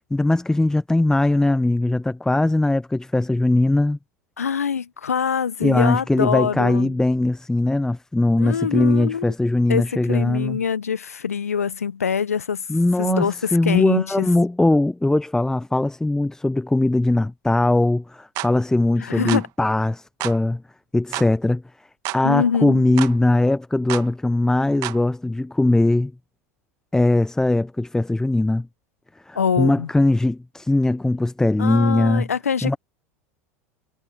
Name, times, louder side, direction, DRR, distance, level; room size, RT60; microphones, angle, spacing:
voice 1, 0.1-4.0 5.6-10.6 12.7-20.6 20.9-21.6 22.1-26.1 26.9-28.7 29.3-32.3 32.6-32.8, left 2 dB, 5° left, 1.1 m, -20 dB
voice 2, 4.4-6.9 8.4-9.3 9.7-12.6 13.0-14.3 19.0-19.5 22.2-23.0 29.3-29.9 31.6-32.8, left 7 dB, 85° left, 1.1 m, -24 dB
sound 1, 18.4-18.5 19.3-19.5 20.2-20.4 21.1-21.3 22.1-22.2 23.0-23.2 23.9-24.1 24.8-25.0, right 21 dB, 50° right, 2.2 m, -29 dB
figure-of-eight pair, 80°, 8 cm